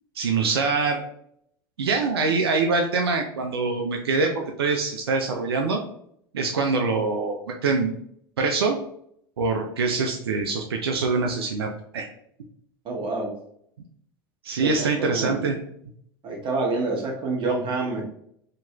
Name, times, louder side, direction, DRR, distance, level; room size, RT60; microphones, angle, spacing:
voice 1, 0.2-1.0 1.8-5.8 6.3-7.9 8.4-8.8 9.4-12.1 14.4-15.6, right 4 dB, 85° right, 3 dB, 0.4 m, -24 dB
voice 2, 12.8-13.3 14.5-15.5 16.2-18.0, right 3 dB, 45° right, -1 dB, 1.0 m, -27 dB
2.9 x 2.8 x 2.3 m, 0.69 s
hypercardioid pair, 80°, 13 cm